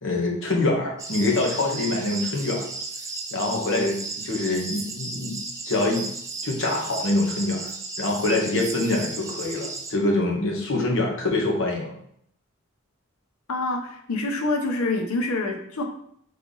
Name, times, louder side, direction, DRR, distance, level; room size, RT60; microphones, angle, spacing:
voice 1, 0.0-2.7 3.3-5.4 5.7-6.1 6.4-7.7 8.0-11.9, left 2 dB, 60° left, -1 dB, 1.1 m, -25 dB
sound 1, 1.0-9.9, right 3 dB, 15° right, 0.3 m, -35 dB
voice 2, 13.5-15.8, left 2 dB, 85° left, 3 dB, 0.8 m, -26 dB
3.6 x 3.4 x 3.9 m, 0.68 s
head